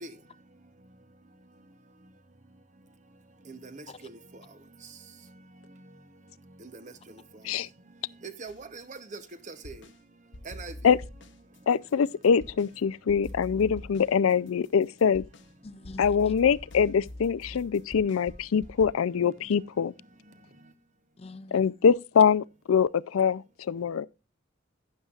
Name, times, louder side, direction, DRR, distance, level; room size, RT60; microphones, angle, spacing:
voice 1, 3.5-4.1 6.6-6.9 8.2-9.2 9.5-9.8 10.5-10.7, right 4 dB, 35° right, 0.8 m, -42 dB
sound 1, 8.5-10.0 10.3-12.7 13.1-18.9, left 1 dB, 60° left, 0.9 m, -45 dB
voice 2, 11.7-15.2 16.0-19.9 21.5-24.1, left 6 dB, 85° left, 0.4 m, -24 dB
voice 3, 15.6-16.3 21.2-21.7, left 2 dB, 30° left, 0.5 m, -45 dB
12.0 x 9.6 x 2.4 m
head